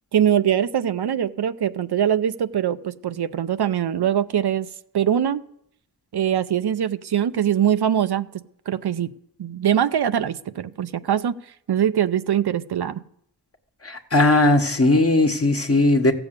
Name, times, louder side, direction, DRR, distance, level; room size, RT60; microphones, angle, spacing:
voice 1, 0.1-4.7 4.9-5.4 6.1-8.3 8.7-9.1 9.4-11.4 11.7-13.0, right 9 dB, 70° right, 0.6 m, -22 dB
voice 2, 13.8-16.1, left 2 dB, 35° left, 1.3 m, -18 dB
15.0 x 7.0 x 8.2 m
wide cardioid pair, 80°, 41 cm